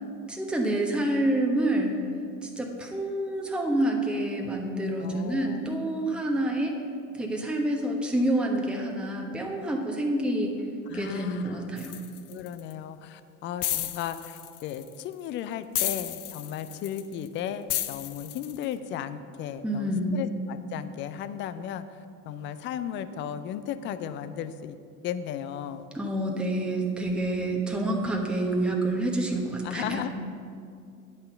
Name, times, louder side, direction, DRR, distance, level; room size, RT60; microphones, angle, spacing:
voice 1, 0.3-1.9 2.4-6.7 7.1-10.5 10.9-12.0 19.6-20.2 25.9-30.0, right 1 dB, ahead, 0 dB, 1.1 m, -28 dB
voice 2, 5.0-5.7 10.9-11.6 12.3-21.9 22.3-25.9 29.6-30.1, left 9 dB, 25° left, 12 dB, 0.3 m, -35 dB
sound 1, 11.8-12.7 13.6-15.0 15.7-17.3 17.7-18.6, left 13 dB, 75° left, 0.6 m, -32 dB
9.1 x 5.6 x 6.8 m, 2.4 s
figure-of-eight pair, 75°, 46 cm